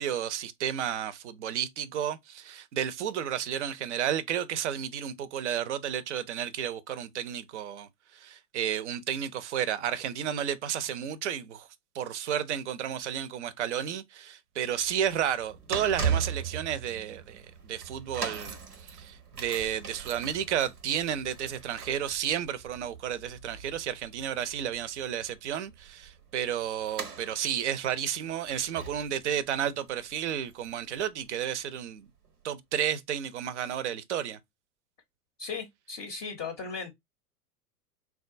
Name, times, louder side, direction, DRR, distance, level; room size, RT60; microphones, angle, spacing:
voice 1, 0.0-11.7 11.9-32.1 32.4-34.4, right 9 dB, 50° right, 0.6 m, -32 dB
sound 1, 14.7-31.0 31.2-31.5 32.3-32.4, right 6 dB, 80° right, 0.8 m, -39 dB
voice 2, 35.4-36.9, left 5 dB, 20° left, 0.6 m, -37 dB
3.6 x 2.3 x 2.4 m
figure-of-eight pair, 95°, 46 cm